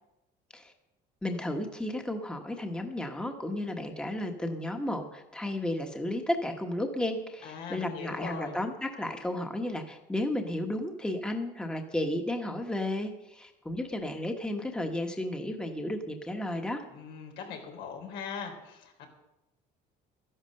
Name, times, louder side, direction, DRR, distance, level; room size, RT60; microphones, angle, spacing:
voice 1, 1.2-16.8, left 1 dB, 5° left, 4 dB, 1.3 m, -33 dB
voice 2, 7.4-8.6 16.9-19.1, left 6 dB, 90° left, 2 dB, 4.0 m, -40 dB
13.5 x 11.0 x 6.6 m, 0.91 s
cardioid pair, 140°, 18 cm